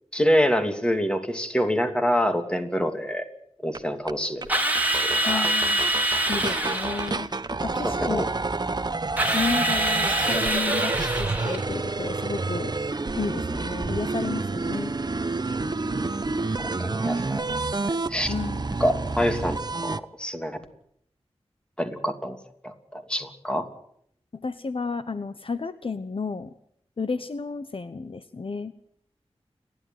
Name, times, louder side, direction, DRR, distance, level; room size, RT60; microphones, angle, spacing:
voice 1, 0.1-3.3 3.6-4.4 5.0-5.5 7.8-8.2 16.5-17.6 17.9-18.3 18.8-20.6 21.8-22.4 22.6-23.6, equal, 10° left, 6 dB, 2.9 m, -26 dB
sound 1, 3.7-3.8 4.1-4.2 4.4-4.5 4.8-20.0, right 3 dB, 40° right, 0.9 m, -29 dB
Drill, 4.5-7.2 9.2-11.7, right 1 dB, 15° right, 3.6 m, -25 dB
voice 2, 5.2-5.8 6.3-7.3 7.6-8.2 9.3-12.7 13.1-14.9 18.3-18.7 24.4-26.5 27.0-28.7, left 4 dB, 55° left, 11 dB, 1.0 m, -31 dB
29.5 x 11.5 x 9.4 m, 0.70 s
wide cardioid pair, 80°, 11 cm